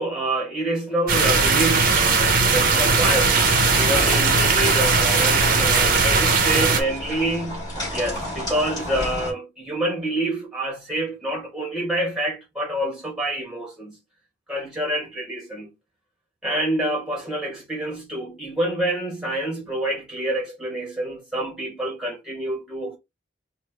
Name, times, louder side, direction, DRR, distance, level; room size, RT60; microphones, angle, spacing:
voice 1, 0.0-3.4 3.7-14.0 14.5-15.7 16.4-23.0, right 1 dB, 5° right, 2.4 m, -27 dB
sound 1, 1.1-6.8, right 4 dB, 50° right, 1.0 m, -19 dB
sound 2, 3.0-9.3, left 1 dB, 20° left, 3.2 m, -31 dB
5.0 x 2.7 x 3.2 m
head